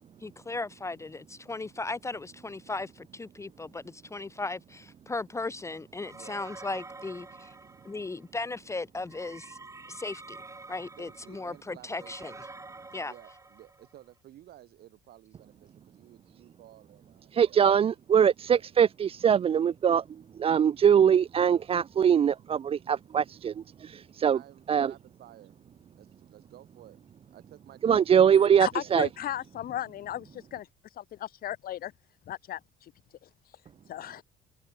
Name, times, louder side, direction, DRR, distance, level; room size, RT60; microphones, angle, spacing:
voice 1, 0.2-7.5 7.8-9.6 9.9-10.4 10.7-12.3 12.9-13.1, left 3 dB, 15° left, 0.8 m, -37 dB
sound 1, 6.0-8.2 9.1-14.0, right 3 dB, 15° right, 6.3 m, -48 dB
voice 2, 6.1-6.5 11.0-12.4 13.0-18.0 18.5-18.7 24.2-25.6 25.9-27.0 27.3-29.0, right 13 dB, 70° right, 7.3 m, -54 dB
voice 3, 17.3-20.0 20.4-23.5 23.8-24.4 24.7-24.9 27.8-29.1, right 8 dB, 35° right, 0.5 m, -22 dB
voice 4, 28.6-30.7 31.0-31.9 32.3-32.9 33.9-34.2, left 12 dB, 60° left, 1.5 m, -36 dB
cardioid pair, 110°, 17 cm